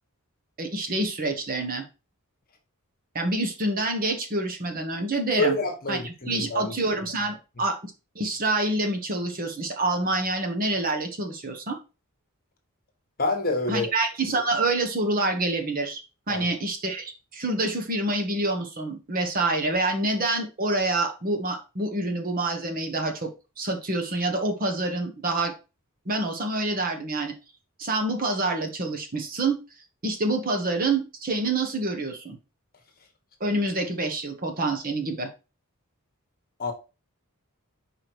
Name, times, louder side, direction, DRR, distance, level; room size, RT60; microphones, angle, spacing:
voice 1, 0.6-1.8 3.1-5.5 5.9-6.0 6.3-11.8 13.7-16.0 16.3-23.3 23.6-25.5 26.1-27.3 27.8-29.6 30.0-32.4 33.4-35.3, right 2 dB, 40° right, 1.2 m, -27 dB
voice 2, 5.4-6.7 13.2-13.9 16.3-16.4 36.6-36.7, left 2 dB, 45° left, 1.3 m, -27 dB
4.9 x 4.8 x 4.5 m
head